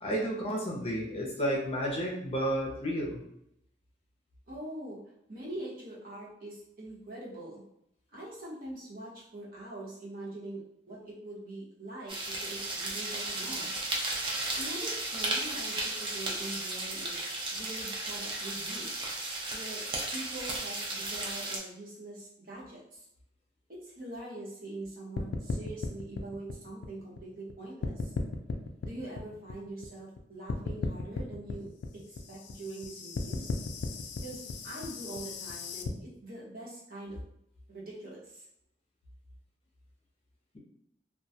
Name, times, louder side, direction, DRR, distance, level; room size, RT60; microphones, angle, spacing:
voice 1, 0.0-3.2, equal, 35° left, -1 dB, 0.5 m, -31 dB
voice 2, 4.5-5.0 5.3-7.6 8.1-10.6 10.9-12.1 12.4-13.7 14.6-19.1 19.5-19.8 20.1-23.1 23.7-28.1 28.8-31.7 31.9-32.0 32.3-33.6 34.2-37.2 37.7-38.4, right 1 dB, 55° right, -5 dB, 0.8 m, -43 dB
sound 1, 12.1-21.6, right 2 dB, 30° right, 0.4 m, -34 dB
sound 2, 25.2-27.5 27.8-30.2 30.5-35.9, left 3 dB, 90° left, 0.3 m, -36 dB
2.2 x 2.1 x 2.7 m, 0.76 s
head